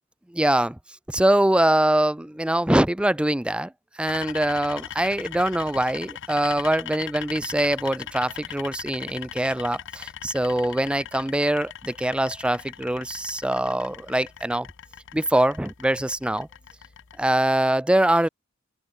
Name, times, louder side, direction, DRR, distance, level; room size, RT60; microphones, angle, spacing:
voice 1, 0.3-0.8 1.1-14.7 15.1-16.5 17.2-18.3, right 1 dB, 5° right, 0.4 m, -23 dB
sound 1, 4.1-17.3, left 10 dB, 60° left, 0.8 m, -40 dB
open air
head